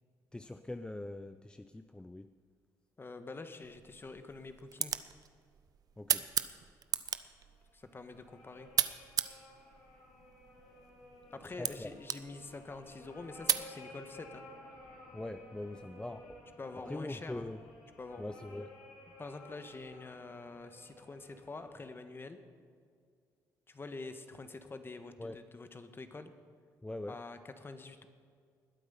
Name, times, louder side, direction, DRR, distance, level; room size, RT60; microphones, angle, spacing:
voice 1, 0.3-2.3 6.0-6.3 11.6-11.9 15.1-16.4 16.9-17.6 18.2-18.7 25.2-25.4 26.8-27.2, left 2 dB, 10° left, 10 dB, 0.5 m, -42 dB
voice 2, 3.0-5.0 7.7-8.7 11.3-14.4 16.6-17.5 18.0-18.3 19.2-22.4 23.7-26.3 27.1-28.1, left 3 dB, 30° left, 9 dB, 1.4 m, -46 dB
sound 1, 3.6-13.7, right 8 dB, 55° right, 0.6 m, -38 dB
sound 2, 7.5-21.9, left 2 dB, 90° left, 3.1 m, -55 dB
20.5 x 8.1 x 5.6 m, 2.1 s
supercardioid pair, 65°, 8 cm